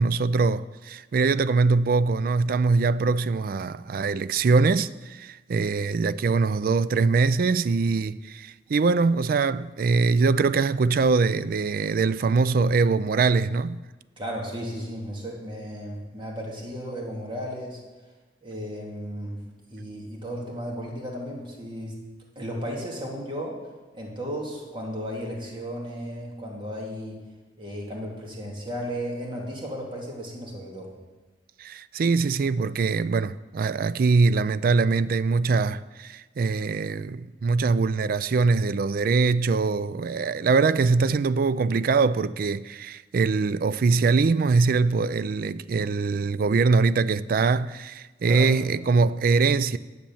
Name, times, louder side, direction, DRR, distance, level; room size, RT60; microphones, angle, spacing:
voice 1, 0.0-13.8 31.6-49.8, right 4 dB, 55° right, 0.4 m, -23 dB
voice 2, 14.2-17.8 18.4-19.4 19.7-22.0 22.4-23.6 23.9-27.2 27.6-30.9 48.2-48.5, equal, 30° right, 2.3 m, -34 dB
10.5 x 6.8 x 7.0 m
head